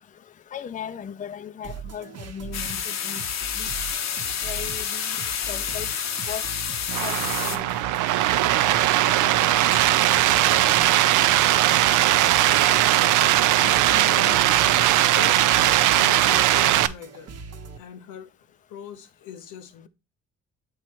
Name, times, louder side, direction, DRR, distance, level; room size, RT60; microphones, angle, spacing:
voice 1, 0.5-3.2 3.6-3.7 4.4-5.2 5.5-5.9 6.3-6.4 7.0-7.7, left 8 dB, 25° left, 0.4 m, -37 dB
sound 1, 1.6-17.8, right 6 dB, 55° right, 0.9 m, -41 dB
sound 2, 2.5-7.6, left 8 dB, 60° left, 0.8 m, -29 dB
sound 3, 6.9-16.9, right 14 dB, 85° right, 0.5 m, -19 dB
voice 2, 13.6-17.3 17.8-18.3 18.7-19.9, left 9 dB, 90° left, 0.9 m, -41 dB
7.7 x 3.1 x 4.5 m
cardioid pair, 90°, 30 cm